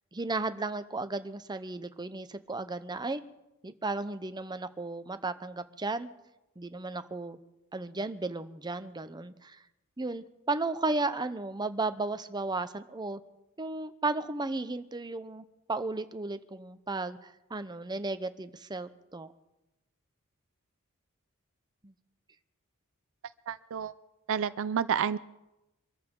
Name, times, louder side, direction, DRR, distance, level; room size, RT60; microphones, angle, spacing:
voice 1, 0.1-3.2 3.6-6.1 6.6-7.4 7.7-9.6 10.0-13.2 13.6-19.3 21.8-21.9, right 3 dB, 20° right, 11 dB, 0.7 m, -34 dB
voice 2, 23.5-23.9 24.3-25.2, right 7 dB, 65° right, 15 dB, 0.5 m, -29 dB
25.0 x 14.0 x 3.8 m, 0.95 s
head